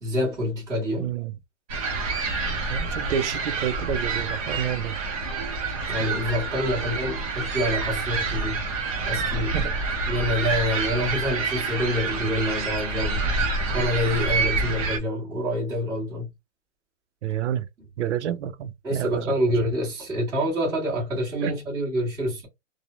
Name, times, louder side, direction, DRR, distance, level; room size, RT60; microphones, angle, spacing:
voice 1, 0.0-1.1 5.9-8.6 9.0-9.6 10.1-13.3 13.7-16.3 18.8-22.5, equal, 10° right, 1.2 m, -27 dB
voice 2, 1.0-1.3 2.7-5.0 9.5-9.7 17.2-17.7 18.0-19.3 21.4-21.5, right 9 dB, 70° right, 0.5 m, -29 dB
sound 1, 1.7-15.0, right 3 dB, 30° right, 0.6 m, -27 dB
3.0 x 2.1 x 2.4 m
hypercardioid pair, 165°, 36 cm